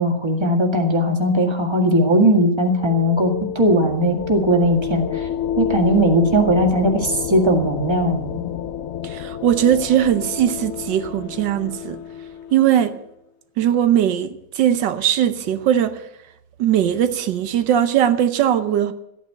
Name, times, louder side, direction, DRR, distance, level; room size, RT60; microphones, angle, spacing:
voice 1, 0.0-5.3 5.6-8.4, equal, 15° right, 1.9 m, -18 dB
sound 1, 2.4-12.9, left 9 dB, 60° left, 0.7 m, -30 dB
voice 2, 9.0-12.0 12.5-13.0 13.6-16.0 16.6-18.9, right 10 dB, 90° right, 1.6 m, -19 dB
14.0 x 9.4 x 8.2 m
omnidirectional pair, 1.9 m